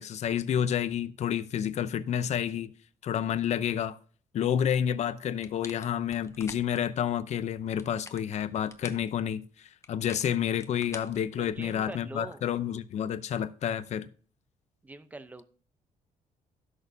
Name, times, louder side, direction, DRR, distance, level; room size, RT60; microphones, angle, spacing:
voice 1, 0.0-2.7 3.0-4.0 4.3-14.1, left 9 dB, 55° left, 0.7 m, -29 dB
sound 1, 5.4-6.9 7.6-9.1 9.8-11.8, left 4 dB, 20° left, 0.8 m, -47 dB
voice 2, 11.4-12.4 14.8-15.4, right 2 dB, 10° right, 0.7 m, -43 dB
17.0 x 6.4 x 2.7 m
cardioid pair, 160°, 14 cm